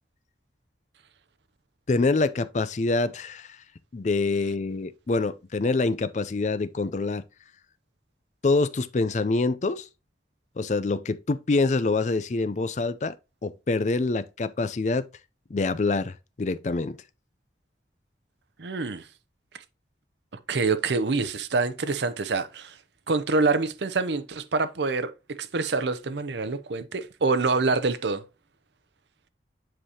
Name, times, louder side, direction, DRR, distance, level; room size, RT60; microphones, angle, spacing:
voice 1, 1.9-3.6 3.9-7.2 8.4-9.8 10.6-13.1 13.4-15.1 15.5-17.0, left 3 dB, 40° left, 0.4 m, -25 dB
voice 2, 18.6-19.1 20.5-22.8 23.1-28.2, right 3 dB, 80° right, 0.7 m, -26 dB
7.8 x 4.9 x 2.8 m
head